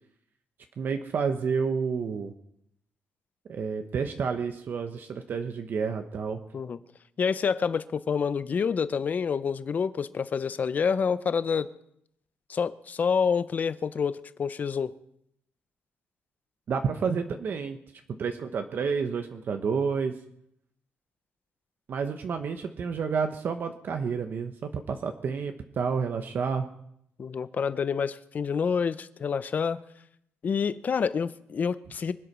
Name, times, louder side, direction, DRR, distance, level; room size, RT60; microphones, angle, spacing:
voice 1, 0.8-2.3 3.5-6.4 16.7-17.8 18.2-20.1 21.9-26.7, right 5 dB, 50° right, 1.1 m, -30 dB
voice 2, 7.2-11.7 12.5-14.9 27.2-29.8 30.4-32.1, left 6 dB, 40° left, 0.7 m, -28 dB
24.5 x 8.3 x 6.2 m
cardioid pair, 140°, 4 cm